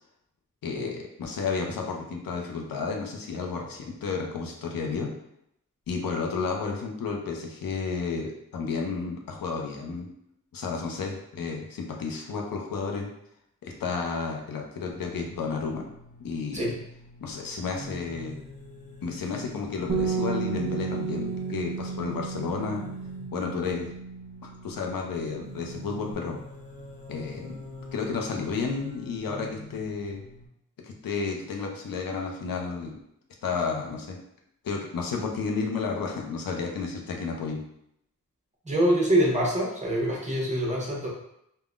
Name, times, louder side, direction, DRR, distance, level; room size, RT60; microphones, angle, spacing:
voice 1, 0.6-5.1 5.9-10.1 10.5-13.1 13.6-15.8 16.2-16.7 17.2-18.4 19.0-22.8 23.3-23.9 24.4-26.4 27.1-27.6 27.9-30.2 30.8-33.0 33.4-34.2 34.6-37.6, left 4 dB, 85° left, 1 dB, 0.6 m, -32 dB
sound 1, 14.8-30.5, left 1 dB, 25° left, 0.5 m, -45 dB
Bass guitar, 19.9-26.1, right 5 dB, 80° right, 0.5 m, -33 dB
voice 2, 38.6-41.1, right 1 dB, 20° right, -4 dB, 0.8 m, -25 dB
3.5 x 2.1 x 2.4 m, 0.76 s
wide cardioid pair, 105°, 33 cm